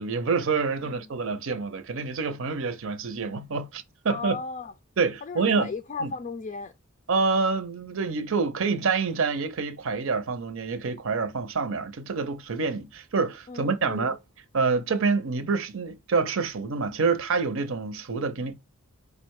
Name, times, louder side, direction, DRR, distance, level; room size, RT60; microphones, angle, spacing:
voice 1, 0.0-4.4 5.0-5.7 6.0-6.1 7.1-14.2 14.5-18.6, right 4 dB, 70° right, 0.6 m, -27 dB
voice 2, 4.1-4.7 5.2-6.7 13.5-14.2, left 4 dB, 35° left, 0.4 m, -35 dB
4.9 x 2.2 x 4.6 m
head